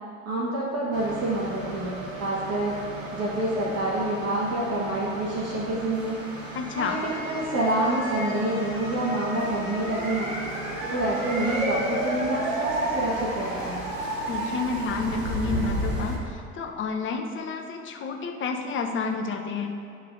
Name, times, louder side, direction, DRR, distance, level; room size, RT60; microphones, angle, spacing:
voice 1, 0.2-2.8 3.1-6.3 6.7-10.3 10.9-13.8, right 1 dB, 40° right, -5 dB, 1.4 m, -27 dB
sound 1, 0.9-16.2, right 1 dB, 80° right, 1.3 m, -32 dB
voice 2, 6.5-7.0 14.3-19.7, left 4 dB, 30° left, 3 dB, 0.9 m, -30 dB
11.5 x 5.8 x 2.6 m, 2.5 s
figure-of-eight pair, 70°, 39 cm